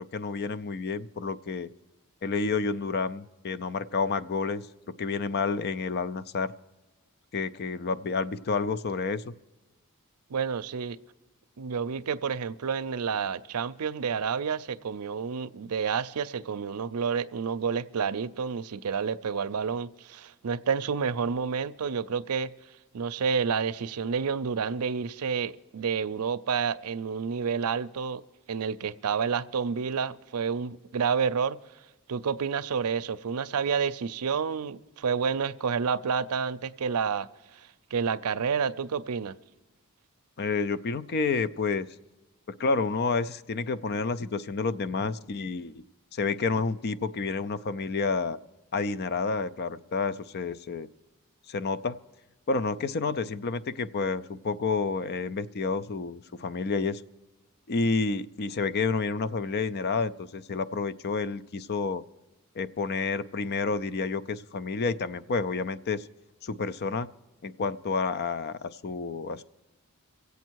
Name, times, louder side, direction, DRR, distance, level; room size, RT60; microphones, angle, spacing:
voice 1, 0.1-1.7 2.2-4.6 5.0-6.5 7.3-9.3 40.4-41.9 42.6-45.8 46.1-48.4 48.7-50.9 51.5-52.0 52.5-57.0 57.7-62.0 62.6-66.1 66.4-67.1 67.4-69.4, left 4 dB, 45° left, 0.5 m, -29 dB
voice 2, 10.3-11.0 11.6-22.5 22.9-28.2 28.5-31.6 32.1-39.3, right 6 dB, 85° right, 0.5 m, -29 dB
24.5 x 8.3 x 4.6 m
head